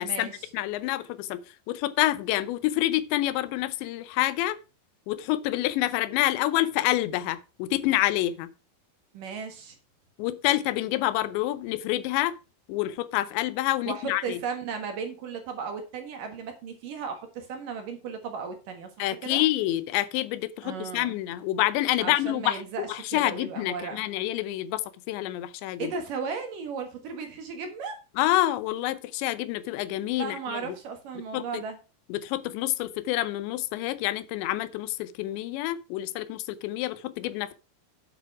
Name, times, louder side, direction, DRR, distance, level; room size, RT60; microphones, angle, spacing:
voice 1, 0.0-0.5 9.1-9.8 13.9-19.4 20.6-21.2 22.0-24.0 25.8-28.0 30.2-31.8, right 5 dB, 60° right, 2.7 m, -35 dB
voice 2, 0.5-1.4 1.7-4.6 5.1-8.5 10.2-12.4 12.7-14.4 19.0-22.6 22.9-24.8 25.1-25.9 28.2-30.6 31.3-31.6 32.1-37.5, left 15 dB, 85° left, 3.0 m, -27 dB
9.3 x 7.7 x 4.7 m
omnidirectional pair, 5.0 m